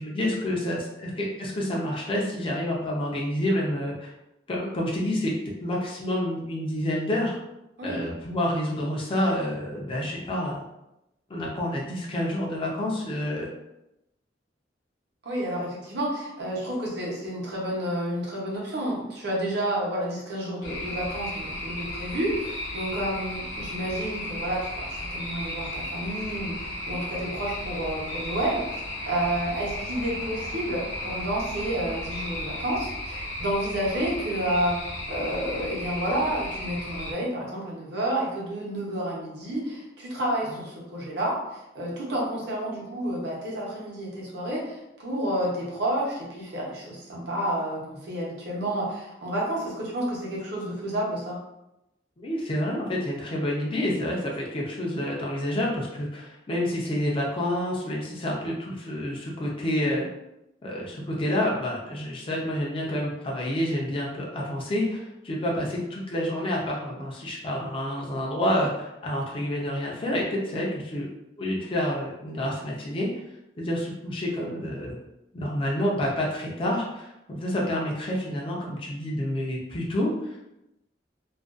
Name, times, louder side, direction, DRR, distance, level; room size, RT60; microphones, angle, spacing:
voice 1, 0.0-4.1 4.5-5.3 5.6-7.4 7.8-10.6 11.3-13.5 40.5-40.6 52.2-60.1 60.6-71.1 71.4-73.1 73.6-75.0 75.3-80.4, left 1 dB, 30° left, -3 dB, 0.4 m, -28 dB
voice 2, 15.2-28.7 29.1-51.4, right 1 dB, 65° right, -4 dB, 0.8 m, -30 dB
sound 1, 20.6-37.1, left 1 dB, 75° left, 0.7 m, -34 dB
2.4 x 2.2 x 2.4 m, 0.89 s
head